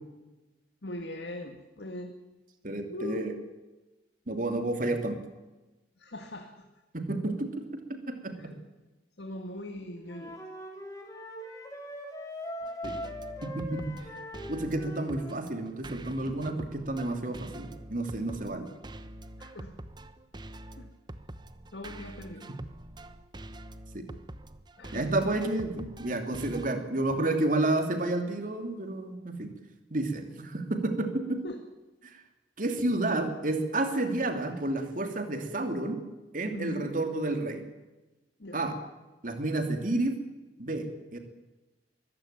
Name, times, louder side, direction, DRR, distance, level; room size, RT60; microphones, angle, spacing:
voice 1, 0.8-2.2 2.9-3.3 6.0-6.7 8.4-8.6 9.2-10.4 19.4-19.8 20.8-20.9 21.7-22.5 24.8-25.1 30.2-30.3 31.4-31.6 36.5-36.9 38.4-38.6, left 1 dB, 70° left, 5 dB, 1.9 m, -40 dB
voice 2, 2.6-3.3 4.3-5.2 6.9-7.6 7.9-8.5 12.8-13.0 13.4-14.0 14.5-18.7 23.9-24.0 24.9-29.5 29.9-31.4 32.0-32.2 32.6-36.0 36.3-37.7 38.5-38.8 39.2-40.2 40.6-41.2, right 2 dB, 50° right, 6 dB, 2.8 m, -30 dB
Wind instrument woodwind instrument, 10.1-15.4, equal, 20° left, 4.3 m, -41 dB
sound 1, 12.6-26.7, right 1 dB, 25° right, 1.0 m, -45 dB
23.0 x 15.5 x 9.0 m, 1.1 s
head